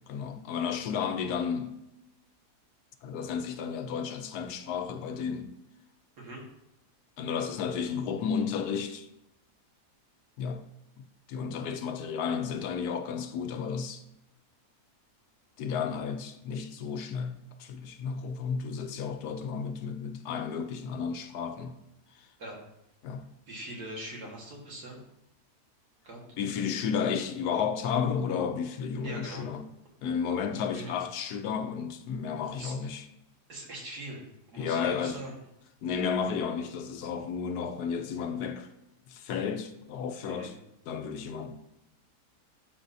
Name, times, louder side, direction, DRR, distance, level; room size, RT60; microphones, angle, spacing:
voice 1, 0.1-1.7 3.0-5.6 7.2-9.1 10.4-10.6 11.3-14.0 15.6-21.7 23.0-23.3 26.4-29.6 30.0-33.1 34.6-35.3 35.8-38.7 39.1-40.5 40.9-41.5, left 6 dB, 75° left, 1.1 m, -32 dB
voice 2, 23.5-25.0 26.0-26.2 29.0-29.5 30.7-31.0 32.6-32.7 33.5-34.2 34.5-35.3 40.3-40.5, right 1 dB, 70° right, 2.1 m, -41 dB
11.5 x 4.0 x 2.7 m
omnidirectional pair, 1.7 m